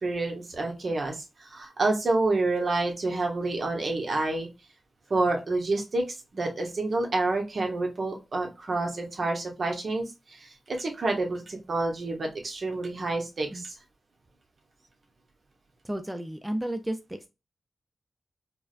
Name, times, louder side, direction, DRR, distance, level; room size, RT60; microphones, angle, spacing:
voice 1, 0.0-4.5 5.1-13.7, right 2 dB, 60° right, 2 dB, 1.0 m, -28 dB
voice 2, 15.8-17.3, right 1 dB, 10° right, 7 dB, 0.4 m, -33 dB
4.5 x 2.1 x 2.4 m, 0.26 s
cardioid pair, 70°, 0 cm